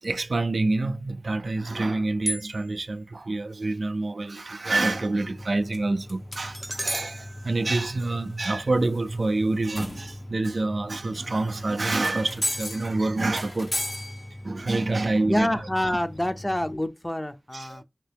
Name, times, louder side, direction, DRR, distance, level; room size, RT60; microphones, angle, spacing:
voice 1, 0.0-13.8 14.4-15.5 17.5-17.8, right 2 dB, 85° right, 0.3 m, -27 dB
sound 1, 2.3-2.9 6.3-8.6, right 1 dB, 30° right, 0.6 m, -35 dB
sound 2, 4.7-16.7, left 1 dB, 70° left, 0.9 m, -37 dB
voice 2, 15.3-17.8, left 1 dB, 25° left, 0.5 m, -27 dB
2.9 x 2.8 x 3.3 m
wide cardioid pair, 40°, 0 cm